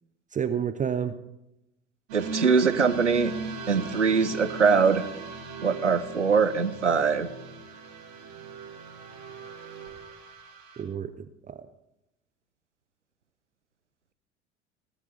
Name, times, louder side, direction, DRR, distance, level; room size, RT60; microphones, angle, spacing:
voice 1, 0.3-1.1 10.8-11.7, right 8 dB, 20° right, 11 dB, 0.7 m, -30 dB
sound 1, 2.1-10.8, right 4 dB, 65° right, 3.2 m, -39 dB
voice 2, 2.1-3.3 3.7-5.0 5.6-7.3, right 5 dB, 85° right, 14 dB, 0.8 m, -22 dB
19.0 x 12.0 x 3.4 m, 0.87 s
figure-of-eight pair, 65°, 35 cm